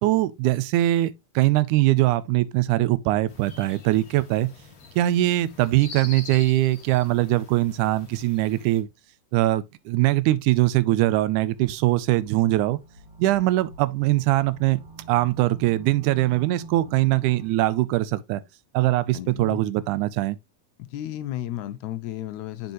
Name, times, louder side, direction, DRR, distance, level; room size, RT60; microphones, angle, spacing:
voice 1, 0.0-4.5 5.0-8.9 9.3-12.8 13.2-14.8 15.1-18.4 18.7-20.4, right 16 dB, 80° right, 2.0 m, -22 dB
sound 1, 3.3-8.8, left 4 dB, 50° left, 1.0 m, -44 dB
ambient bass A note, 11.5-17.8, right 4 dB, 55° right, 1.9 m, -46 dB
voice 2, 19.1-19.6 20.9-22.7, left 13 dB, 75° left, 1.8 m, -33 dB
7.7 x 5.3 x 3.0 m
omnidirectional pair, 3.7 m